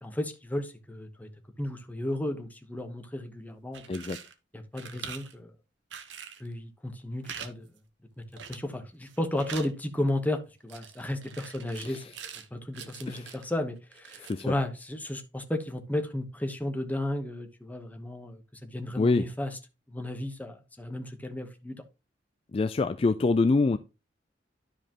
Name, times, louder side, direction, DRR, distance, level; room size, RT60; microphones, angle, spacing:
voice 1, 0.0-1.3 1.6-3.8 4.5-5.5 6.4-7.7 8.2-12.0 12.5-19.6 19.9-21.8, left 1 dB, 10° left, 1.0 m, -34 dB
sound 1, 3.6-4.3 4.7-5.3 5.9-6.5 7.2-7.5 7.8-7.9 8.4-8.8 9.1-9.7 10.7-12.5 12.7-13.5 13.9-14.5, right 7 dB, 80° right, 1.0 m, -43 dB
voice 2, 14.2-14.5 19.0-19.3 22.5-23.8, left 3 dB, 30° left, 0.3 m, -25 dB
12.0 x 5.0 x 2.9 m
head